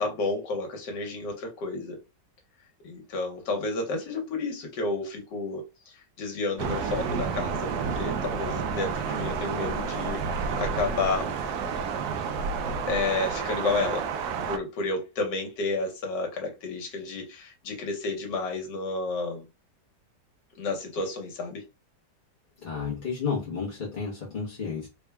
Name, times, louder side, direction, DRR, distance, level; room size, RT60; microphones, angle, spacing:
voice 1, 0.0-2.0 2.8-5.6 6.2-11.3 12.6-14.0 14.5-19.4 20.6-21.6, left 3 dB, 75° left, 1.6 m, -31 dB
Thunder, 6.6-14.6, right 6 dB, 70° right, 1.0 m, -30 dB
voice 2, 22.6-24.9, left 5 dB, 35° left, 0.8 m, -31 dB
3.6 x 2.2 x 3.3 m
omnidirectional pair, 1.9 m